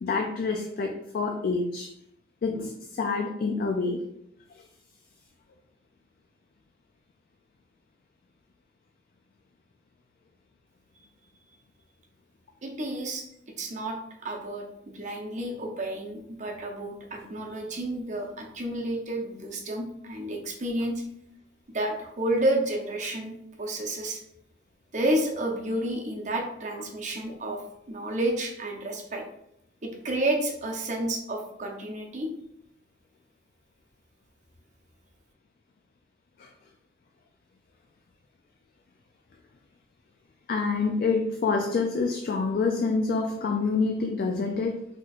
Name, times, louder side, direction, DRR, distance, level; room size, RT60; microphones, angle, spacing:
voice 1, 0.0-1.9 2.4-4.0 27.3-27.4 36.4-36.5 40.5-44.8, left 4 dB, 55° left, 3 dB, 0.3 m, -27 dB
voice 2, 12.6-13.2 13.6-21.0 21.7-24.2 24.9-27.6 27.9-29.2 29.8-32.3, right 1 dB, 45° right, 1 dB, 0.7 m, -30 dB
4.1 x 3.0 x 2.4 m, 0.75 s
head